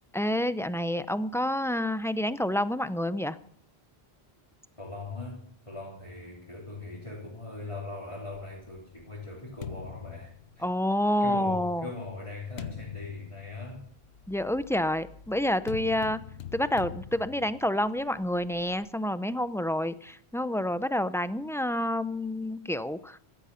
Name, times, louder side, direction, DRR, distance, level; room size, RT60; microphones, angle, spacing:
voice 1, 0.1-3.4 10.6-11.9 14.3-16.2 16.5-23.2, left 1 dB, 5° left, 13 dB, 0.3 m, -28 dB
voice 2, 4.8-10.7 11.2-13.9, left 3 dB, 30° left, -5 dB, 3.8 m, -40 dB
sound 1, 8.5-11.1 11.8-18.9, left 8 dB, 75° left, 1.1 m, -44 dB
15.0 x 13.5 x 5.7 m, 0.62 s
omnidirectional pair, 1.1 m